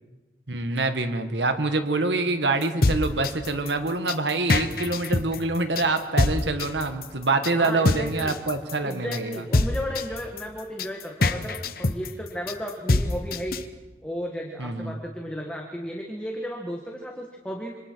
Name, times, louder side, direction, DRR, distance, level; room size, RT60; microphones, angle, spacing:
voice 1, 0.5-9.4 14.6-15.0, right 3 dB, 80° right, 8 dB, 1.6 m, -26 dB
sound 1, 2.6-13.6, left 2 dB, 55° left, 0.9 m, -24 dB
voice 2, 7.5-8.4 8.8-13.6 14.0-17.8, equal, 5° left, 0 dB, 1.6 m, -34 dB
26.5 x 26.0 x 4.6 m, 1.2 s
head